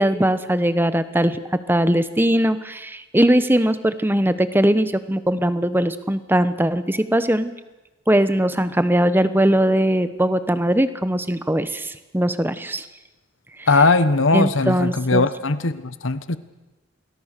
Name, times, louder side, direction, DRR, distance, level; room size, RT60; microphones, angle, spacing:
voice 1, 0.0-1.4 1.7-7.5 8.1-12.8 13.6-13.7 14.3-15.3, right 1 dB, 10° right, 12 dB, 1.0 m, -20 dB
voice 2, 13.7-16.4, left 3 dB, 70° left, 13 dB, 1.3 m, -19 dB
28.0 x 21.5 x 6.8 m, 1.1 s
head